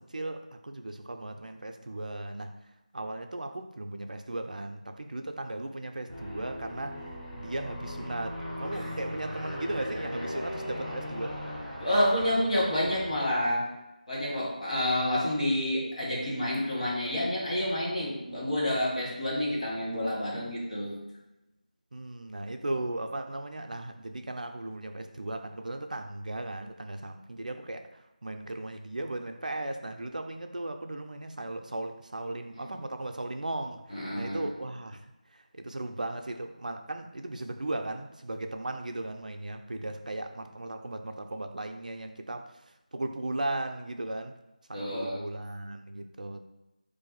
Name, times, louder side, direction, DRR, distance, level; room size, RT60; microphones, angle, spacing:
voice 1, 0.0-2.5 2.9-7.0 7.3-11.4 21.9-33.8 34.2-42.5 42.9-44.3 44.7-46.4, right 2 dB, 65° right, 5 dB, 0.3 m, -37 dB
Aircraft, 6.1-13.4, left 1 dB, 5° left, 0.4 m, -38 dB
voice 2, 11.8-13.6 14.1-21.0 32.5-32.7 33.9-34.5 44.7-45.2, left 1 dB, 55° left, -5 dB, 1.2 m, -29 dB
2.5 x 2.3 x 4.0 m, 0.97 s
figure-of-eight pair, 165°, 5 cm